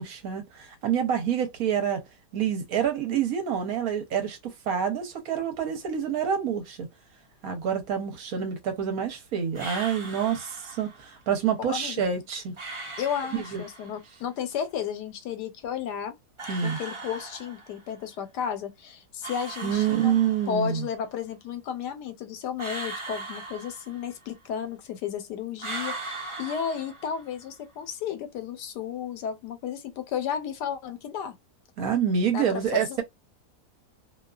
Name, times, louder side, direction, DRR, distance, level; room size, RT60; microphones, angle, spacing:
voice 1, 0.0-2.0 2.3-6.9 7.4-12.5 13.3-13.6 16.5-16.8 19.6-20.9 31.8-33.0, right 8 dB, 65° right, 1.0 m, -27 dB
sound 1, 9.5-11.0 12.6-14.0 16.4-17.9 19.2-20.8 22.6-24.3 25.6-27.4, right 3 dB, 40° right, 0.4 m, -39 dB
voice 2, 11.6-12.0 13.0-16.1 16.6-20.2 20.5-31.4 32.3-33.0, left 8 dB, 85° left, 1.2 m, -33 dB
2.7 x 2.3 x 2.3 m
omnidirectional pair, 1.8 m